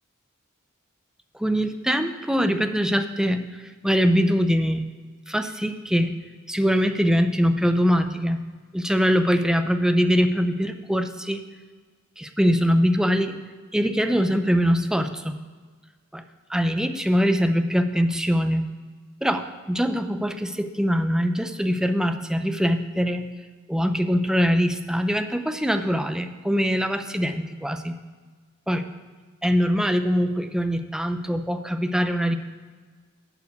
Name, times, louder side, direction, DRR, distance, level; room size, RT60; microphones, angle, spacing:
voice 1, 1.4-3.4 3.8-4.8 5.3-6.1 6.5-8.4 8.7-11.4 12.2-13.4 13.7-15.4 16.1-16.2 16.5-18.7 19.2-23.3 23.7-27.9 28.7-28.9 29.4-32.3, equal, 5° right, 8 dB, 0.5 m, -23 dB
11.0 x 4.8 x 8.2 m, 1.5 s
head